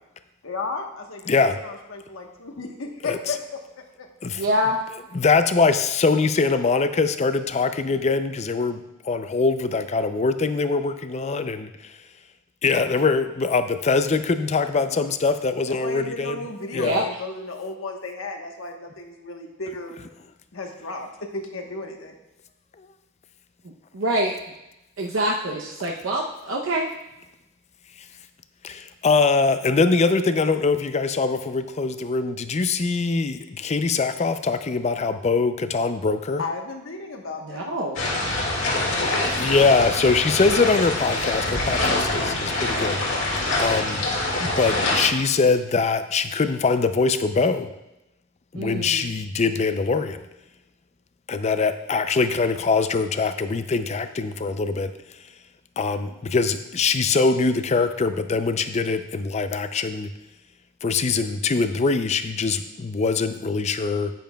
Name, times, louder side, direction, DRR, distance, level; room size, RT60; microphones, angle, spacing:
voice 1, 0.4-4.1 14.7-15.1 15.7-20.0 20.5-22.1 36.4-37.7, left 3 dB, 85° left, 3 dB, 1.2 m, -34 dB
voice 2, 1.3-1.6 3.0-3.2 4.2-4.4 5.1-8.8 9.0-11.7 12.6-16.4 16.7-17.1 28.6-36.4 39.2-43.0 43.6-44.0 44.4-47.7 48.5-50.2 51.3-54.9 55.8-60.1 60.8-64.1, left 4 dB, 35° left, 10 dB, 0.4 m, -23 dB
voice 3, 4.4-4.8 16.8-17.0 23.9-24.4 25.0-26.9 37.4-38.0 48.5-49.1, right 1 dB, 75° right, -1 dB, 0.7 m, -25 dB
sound 1, 38.0-45.1, left 2 dB, 70° left, 1.9 m, -25 dB
10.0 x 9.3 x 2.3 m, 0.93 s
head